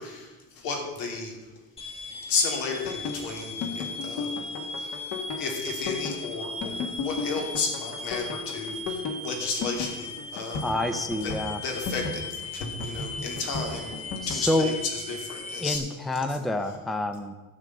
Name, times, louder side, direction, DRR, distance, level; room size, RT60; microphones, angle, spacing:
voice 1, 0.0-1.5 2.3-4.3 4.8-4.9 5.4-10.7 11.2-13.9 14.3-15.8 16.3-16.4, left 4 dB, 85° left, 2 dB, 3.0 m, -33 dB
sound 1, 1.8-15.8, left 2 dB, 15° left, 1.0 m, -38 dB
sound 2, 2.9-14.4, left 4 dB, 55° left, 1.5 m, -34 dB
voice 2, 10.6-11.6 14.2-14.7 15.6-17.3, left 1 dB, ahead, 9 dB, 0.4 m, -28 dB
12.5 x 5.3 x 8.7 m, 1.2 s
cardioid pair, 165°, 34 cm